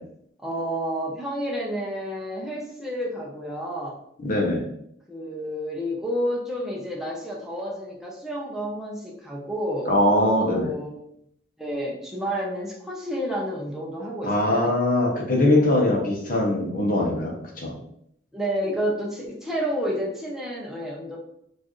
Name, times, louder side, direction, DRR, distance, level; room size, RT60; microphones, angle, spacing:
voice 1, 0.4-4.0 5.1-9.9 10.5-11.0 11.6-14.7 18.3-21.2, equal, ahead, -4 dB, 0.6 m, -30 dB
voice 2, 4.2-4.6 9.8-10.7 14.2-17.7, left 1 dB, 50° left, -1 dB, 0.9 m, -22 dB
4.3 x 2.6 x 3.0 m, 0.72 s
head